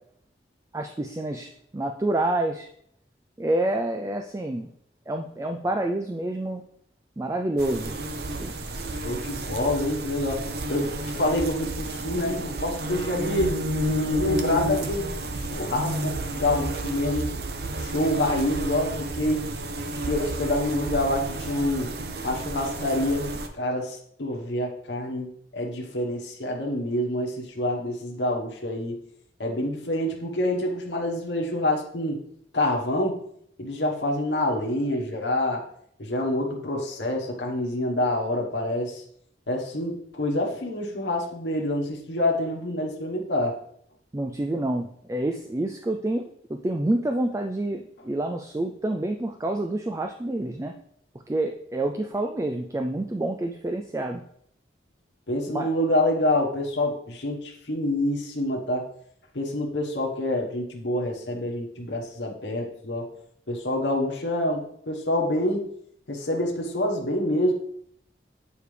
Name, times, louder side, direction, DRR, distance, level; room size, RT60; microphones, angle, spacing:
voice 1, 0.7-2.7 3.4-4.7 5.1-6.6 7.2-7.9 8.4-8.5 44.1-50.7 51.3-54.2 55.5-55.7, right 1 dB, 15° right, 4 dB, 0.3 m, -28 dB
sound 1, 7.6-23.5, right 1 dB, 60° right, 0.7 m, -31 dB
voice 2, 9.0-10.4 10.7-13.6 14.1-17.3 17.8-19.4 20.1-21.9 22.2-25.3 25.5-28.9 29.4-32.2 32.5-33.2 33.6-35.6 36.0-39.0 39.5-43.6 55.3-58.8 59.3-63.1 63.5-65.7 66.1-67.5, left 1 dB, 80° left, -1 dB, 1.3 m, -27 dB
8.7 x 4.7 x 3.3 m, 0.68 s
head